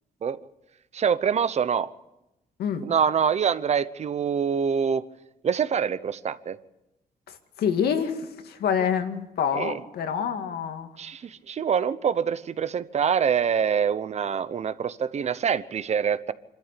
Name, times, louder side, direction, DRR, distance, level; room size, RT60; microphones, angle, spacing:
voice 1, 0.9-1.9 2.8-5.0 5.4-6.6 9.5-9.7 11.0-16.3, right 7 dB, 45° right, 15 dB, 0.9 m, -25 dB
voice 2, 7.3-10.9, left 7 dB, 85° left, 6 dB, 2.1 m, -27 dB
26.0 x 13.0 x 8.4 m, 0.91 s
cardioid pair, 115°, 16 cm